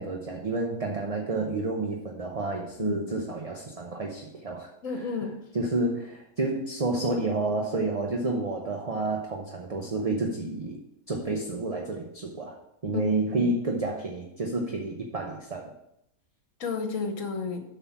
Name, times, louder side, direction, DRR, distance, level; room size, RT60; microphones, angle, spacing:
voice 1, 0.0-4.7 4.9-5.1 5.5-10.8 11.1-12.6 12.8-15.7, right 2 dB, 30° right, 1 dB, 0.8 m, -30 dB
voice 2, 4.8-5.3 12.9-13.5 16.6-17.6, left 5 dB, 65° left, 5 dB, 1.5 m, -32 dB
7.7 x 5.8 x 5.8 m, 0.80 s
omnidirectional pair, 1.5 m